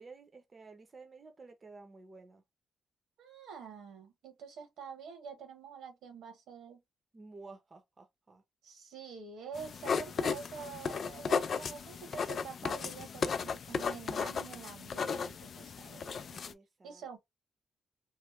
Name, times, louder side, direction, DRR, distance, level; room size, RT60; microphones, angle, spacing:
voice 1, 0.0-2.4 7.1-8.4 16.4-17.2, right 3 dB, 30° right, 0.7 m, -53 dB
voice 2, 3.2-6.8 8.6-16.4 16.8-17.2, right 6 dB, 90° right, 1.2 m, -47 dB
sound 1, 9.6-16.5, left 6 dB, 50° left, 0.3 m, -35 dB
3.1 x 2.0 x 3.3 m
cardioid pair, 110°, 0 cm